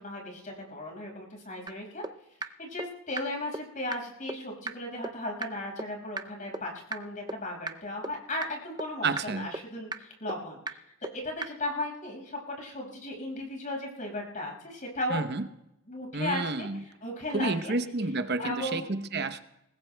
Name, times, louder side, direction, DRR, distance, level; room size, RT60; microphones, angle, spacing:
voice 1, 0.0-2.0 2.4-10.8 11.1-15.3 15.9-17.7 18.4-18.9, left 1 dB, 40° left, 1 dB, 5.5 m, -36 dB
sound 1, 1.7-1.8 2.0-2.1 2.4-2.5 2.8-2.9 3.2-3.3 3.5-3.6 3.9-4.0 4.3-4.4 4.7-4.8 5.0-5.1 5.4-5.5 5.8-5.9 6.2-6.3 6.5-6.6 6.9-7.0 7.3-7.4 7.7-7.8 8.0-8.1 8.4-8.5 8.8-8.9 9.2-9.3 9.5-9.6 9.9-10.0 10.3-10.4 10.7-10.8 11.0-11.1 11.4-11.5, right 3 dB, 20° right, 0.5 m, -33 dB
voice 2, 9.0-9.5 15.1-15.4 16.1-16.8 17.3-19.4, right 3 dB, 50° right, 9 dB, 0.8 m, -30 dB
24.5 x 20.0 x 2.2 m, 0.85 s
head